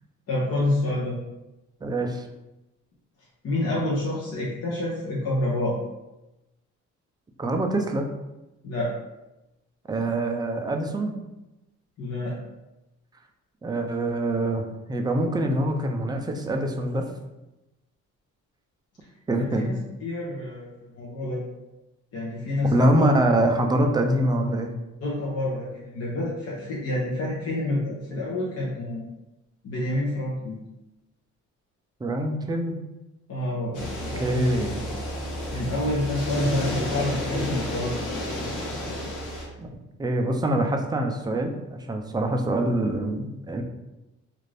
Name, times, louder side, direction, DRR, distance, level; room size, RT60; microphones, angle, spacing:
voice 1, 0.3-1.2 3.4-5.8 8.6-8.9 12.0-12.4 19.4-21.4 22.1-23.1 25.0-29.0 29.6-30.6 33.3-33.8 34.1-34.5 35.5-38.3, left 1 dB, 55° left, -6 dB, 0.8 m, -28 dB
voice 2, 1.8-2.2 7.4-8.1 9.9-11.2 13.6-17.0 19.3-19.7 22.7-24.7 32.0-32.8 34.2-34.8 39.6-39.7 40.0-43.6, right 1 dB, 15° right, 3 dB, 0.3 m, -24 dB
sound 1, 33.7-39.5, left 1 dB, 85° left, 0.9 m, -31 dB
2.5 x 2.5 x 3.2 m, 0.99 s
cardioid pair, 90°, 30 cm